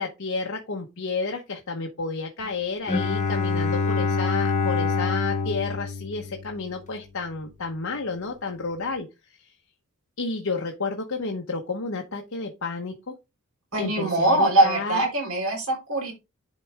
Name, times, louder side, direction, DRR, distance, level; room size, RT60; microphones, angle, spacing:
voice 1, 0.0-9.1 10.2-13.1 13.8-15.0, left 4 dB, 65° left, 1 dB, 1.0 m, -31 dB
Bowed string instrument, 2.9-6.8, left 4 dB, 35° left, 1.1 m, -26 dB
voice 2, 13.7-16.1, right 1 dB, 75° right, 1 dB, 4.4 m, -22 dB
10.5 x 4.2 x 3.5 m, 0.26 s
head